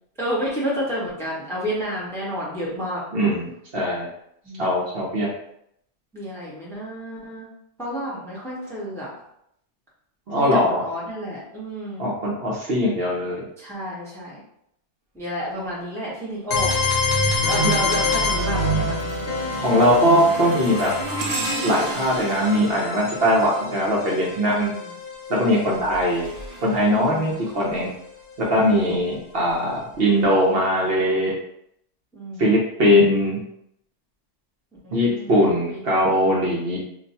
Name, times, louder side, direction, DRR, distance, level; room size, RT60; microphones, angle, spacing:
voice 1, 0.2-3.0 4.4-5.2 6.1-7.5 7.8-9.1 10.4-12.1 13.6-14.4 15.1-16.7 17.1-19.0 24.6-24.9 27.0-27.4 32.1-32.5 34.8-35.3 35.7-35.8, equal, 5° left, -7 dB, 0.7 m, -31 dB
voice 2, 3.1-3.5 3.7-4.1 4.6-5.3 10.3-10.8 12.0-13.4 17.6-18.0 19.6-20.9 21.6-24.7 25.3-26.3 26.6-27.9 28.4-31.4 32.4-33.4 34.9-36.8, equal, 55° right, -4 dB, 0.9 m, -20 dB
sound 1, 16.5-26.2, left 2 dB, 60° left, 0.8 m, -26 dB
sound 2, 16.6-17.0 17.5-24.3 25.6-27.8 28.4-28.6 29.5-29.6, right 2 dB, 85° right, 1.0 m, -35 dB
2.5 x 2.2 x 4.0 m, 0.74 s
omnidirectional pair, 1.3 m